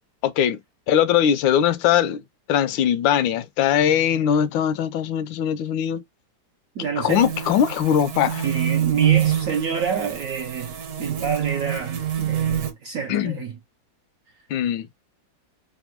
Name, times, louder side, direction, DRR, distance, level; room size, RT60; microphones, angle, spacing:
voice 1, 0.2-0.6 0.9-2.2 2.5-6.0 7.0-8.4 13.1-13.4 14.5-14.9, left 9 dB, 85° left, 1.3 m, -21 dB
voice 2, 6.8-7.3 8.4-13.6, right 6 dB, 75° right, 0.7 m, -28 dB
sound 1, 7.1-12.7, right 10 dB, 60° right, 1.3 m, -25 dB
3.5 x 2.2 x 4.3 m
omnidirectional pair, 2.0 m